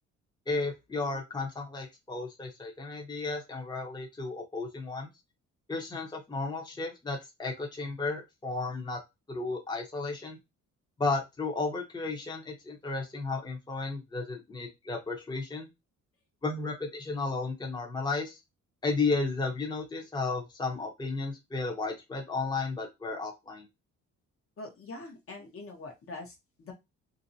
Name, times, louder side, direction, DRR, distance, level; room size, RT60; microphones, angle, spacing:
voice 1, 0.5-5.1 5.7-9.0 9.3-10.4 11.0-15.7 16.4-18.4 18.8-23.7, left 3 dB, 15° left, 0 dB, 0.7 m, -33 dB
voice 2, 24.6-26.7, left 2 dB, 45° left, 2 dB, 0.9 m, -44 dB
2.6 x 2.1 x 2.6 m, 0.21 s
cardioid pair, 90°, 30 cm